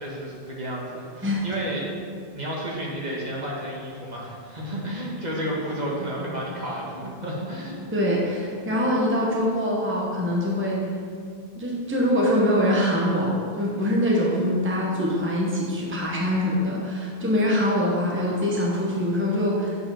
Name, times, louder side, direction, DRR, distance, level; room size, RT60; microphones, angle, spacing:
voice 1, 0.0-1.8 2.3-7.8, equal, 45° right, -4 dB, 1.5 m, -31 dB
voice 2, 7.9-10.8 11.5-19.8, left 1 dB, 10° right, -4 dB, 1.1 m, -23 dB
8.5 x 4.8 x 5.7 m, 2.3 s
omnidirectional pair, 1.0 m